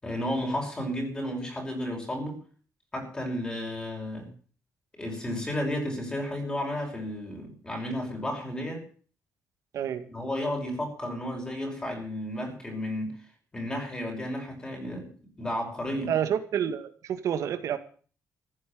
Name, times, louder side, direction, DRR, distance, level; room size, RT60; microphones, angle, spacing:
voice 1, 0.0-2.4 2.9-4.3 5.0-8.9 10.1-13.1 13.5-15.1 15.4-16.1, left 1 dB, 15° left, 1 dB, 5.6 m, -32 dB
voice 2, 16.1-17.8, right 9 dB, 75° right, 9 dB, 2.2 m, -28 dB
15.5 x 8.9 x 8.7 m, 0.42 s
wide cardioid pair, 170°, 6 cm